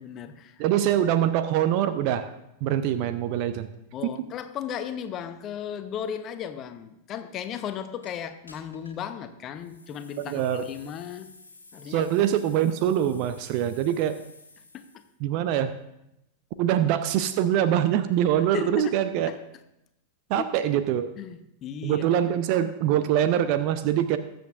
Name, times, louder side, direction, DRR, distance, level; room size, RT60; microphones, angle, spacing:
voice 1, 0.0-0.6 3.9-11.3 11.7-12.1 14.7-14.9 18.4-18.9 19.3-19.4 20.4-20.5 21.2-22.0, left 8 dB, 30° left, 10 dB, 0.8 m, -35 dB
voice 2, 0.6-2.3 2.6-3.7 10.2-10.6 11.9-14.2 15.2-15.7 16.6-19.3 20.3-21.1 21.8-24.2, right 10 dB, 45° right, 11 dB, 0.5 m, -24 dB
sound 1, 8.0-8.1 8.5-9.0 9.5-15.1, left 3 dB, 80° left, 1.7 m, -52 dB
20.5 x 7.8 x 2.5 m, 0.85 s
figure-of-eight pair, 90°, 0 cm